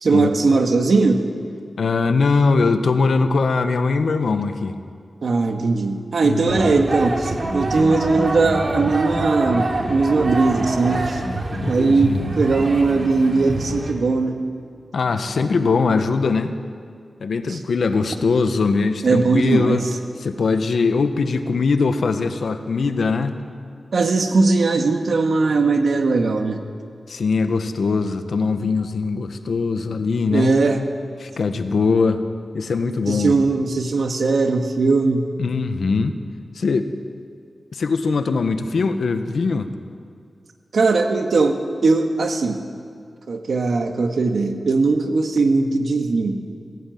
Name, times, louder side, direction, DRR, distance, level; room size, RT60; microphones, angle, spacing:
voice 1, 0.0-1.2 5.2-11.2 11.7-14.4 17.5-17.6 19.0-19.8 23.9-26.6 30.3-30.8 33.1-35.3 40.7-42.6 43.3-46.4, right 3 dB, 75° right, 5 dB, 1.9 m, -19 dB
voice 2, 1.8-4.8 6.2-6.8 11.5-12.3 12.9-13.0 14.9-16.5 17.2-19.9 20.2-23.4 27.1-30.5 31.2-32.2 32.5-33.3 35.4-36.1 36.5-36.9 37.7-39.7, left 4 dB, 85° left, 8 dB, 1.3 m, -21 dB
sound 1, 6.5-13.9, right 2 dB, 50° right, 3.0 m, -26 dB
21.0 x 15.5 x 9.4 m, 2.2 s
wide cardioid pair, 85°, 0 cm